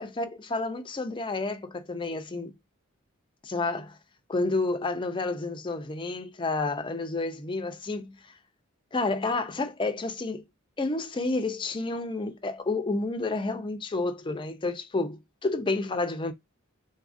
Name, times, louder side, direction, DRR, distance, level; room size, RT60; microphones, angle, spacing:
voice 1, 0.0-2.5 3.4-4.0 4.3-8.2 8.9-10.4 10.8-16.3, left 3 dB, 20° left, 0.4 m, -30 dB
3.9 x 2.4 x 2.5 m
head